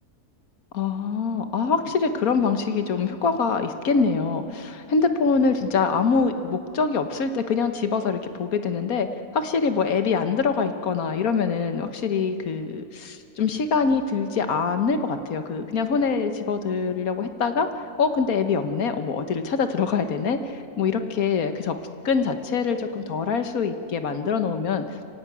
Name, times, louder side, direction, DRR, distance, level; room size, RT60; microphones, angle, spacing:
voice 1, 0.7-9.1 9.3-17.7 18.0-21.8 22.0-25.0, left 5 dB, 65° left, 8 dB, 1.5 m, -24 dB
24.5 x 16.0 x 9.4 m, 2.6 s
omnidirectional pair, 1.7 m